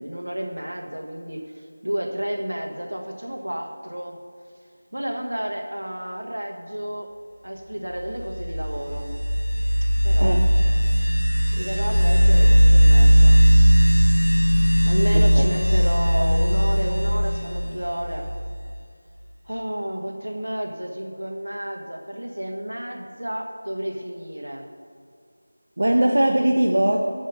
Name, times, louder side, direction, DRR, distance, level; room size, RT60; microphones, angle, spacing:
voice 1, 0.0-1.5 1.8-4.2 4.9-7.1 7.4-9.1 9.8-10.4 11.5-13.4 14.2-14.3 14.8-18.3 19.5-24.6, equal, 85° right, 2 dB, 1.6 m, -31 dB
sound 1, 8.2-18.7, equal, 90° left, 0.8 m, -18 dB
voice 2, 10.2-10.5 15.1-15.5 25.8-27.0, right 1 dB, 65° right, 1 dB, 0.8 m, -20 dB
7.4 x 6.8 x 7.4 m, 2.3 s
figure-of-eight pair, 170°, 0 cm